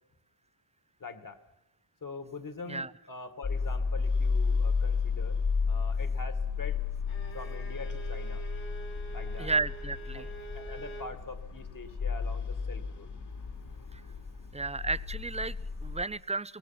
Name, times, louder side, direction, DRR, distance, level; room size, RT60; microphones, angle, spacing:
voice 1, 1.0-1.4 2.0-6.8 7.3-8.4 9.1-9.5 10.1-13.1, left 4 dB, 45° left, 9 dB, 2.3 m, -44 dB
sound 1, 3.4-16.0, left 5 dB, 60° left, 3.3 m, -32 dB
Bowed string instrument, 7.1-11.2, right 3 dB, 85° left, 3.1 m, -46 dB
voice 2, 9.4-10.2 13.9-14.0 14.5-16.6, right 3 dB, 15° right, 16 dB, 0.6 m, -33 dB
25.5 x 18.0 x 6.0 m, 0.95 s
cardioid pair, 80°, 46 cm